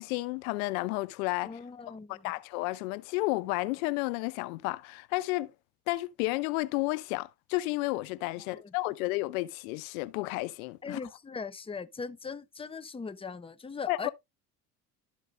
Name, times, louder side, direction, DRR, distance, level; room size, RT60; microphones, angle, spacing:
voice 1, 0.0-1.6 2.1-5.5 5.9-11.0 13.9-14.1, left 20 dB, 85° left, 0.6 m, -32 dB
voice 2, 1.4-2.3 8.4-8.7 10.8-14.1, left 5 dB, 15° left, 0.7 m, -40 dB
12.5 x 4.6 x 2.5 m
supercardioid pair, 70°, 41 cm